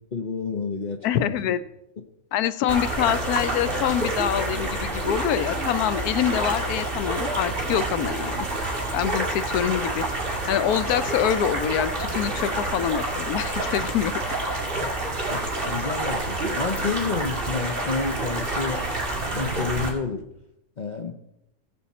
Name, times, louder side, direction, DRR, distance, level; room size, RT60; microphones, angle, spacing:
voice 1, 0.1-1.5 14.8-14.9 15.3-18.9 19.3-20.3 20.8-21.1, left 4 dB, 40° left, 4 dB, 0.7 m, -30 dB
voice 2, 1.0-1.6 2.3-8.5 8.9-10.0 10.5-14.1, left 10 dB, 85° left, 14 dB, 1.1 m, -25 dB
sound 1, 2.7-19.9, right 2 dB, 35° right, 2.1 m, -28 dB
16.0 x 7.1 x 4.2 m, 0.82 s
omnidirectional pair, 1.6 m